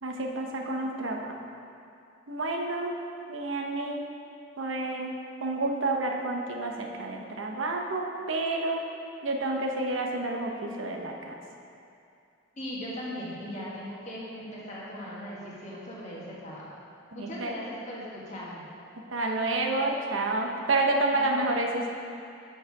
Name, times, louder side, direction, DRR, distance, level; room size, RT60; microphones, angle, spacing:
voice 1, 0.0-1.3 2.3-3.0 3.3-4.1 4.6-5.1 5.4-8.8 9.2-11.4 17.2-17.5 19.1-21.9, right 2 dB, 80° right, 1 dB, 0.8 m, -29 dB
voice 2, 12.6-16.7 17.1-18.6 21.1-21.4, equal, 35° left, -6 dB, 1.5 m, -39 dB
6.7 x 6.3 x 4.7 m, 2.5 s
head